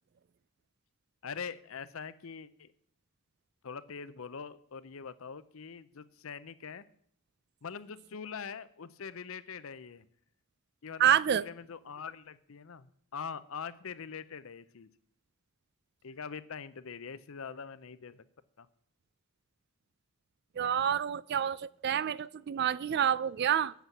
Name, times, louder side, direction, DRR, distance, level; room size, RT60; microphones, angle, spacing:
voice 1, 1.2-2.7 3.6-6.8 7.6-10.1 10.8-14.9 16.0-18.2 18.6-18.7, left 6 dB, 65° left, 0.6 m, -43 dB
voice 2, 11.0-11.4 20.6-23.7, right 9 dB, 50° right, 0.3 m, -28 dB
8.1 x 7.6 x 8.2 m
head